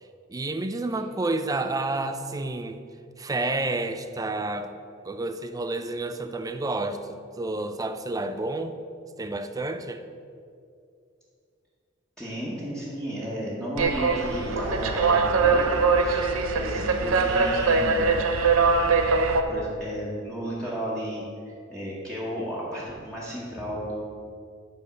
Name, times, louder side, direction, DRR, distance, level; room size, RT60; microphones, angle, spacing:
voice 1, 0.3-2.8 3.2-4.7 5.0-8.8 9.2-10.0, right 2 dB, 15° right, 8 dB, 0.4 m, -30 dB
voice 2, 12.2-18.1 19.5-24.0, equal, 5° left, -8 dB, 1.1 m, -33 dB
sound 1, 13.8-19.4, right 4 dB, 85° right, 0.6 m, -22 dB
9.6 x 3.5 x 6.3 m, 2.4 s
head